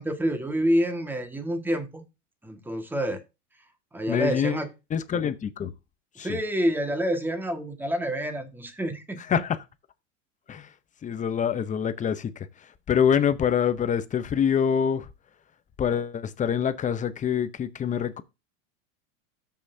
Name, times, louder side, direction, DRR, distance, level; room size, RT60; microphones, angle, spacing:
voice 1, 0.0-2.1 2.4-3.2 3.9-4.7 6.1-9.2, equal, 5° right, 1.6 m, -27 dB
voice 2, 4.1-4.6 4.9-5.7 6.2-6.4 9.2-9.6 10.5-10.7 11.0-15.1 15.8-18.2, left 8 dB, 20° left, 0.7 m, -26 dB
13.5 x 5.7 x 2.7 m
supercardioid pair, 130°, 39 cm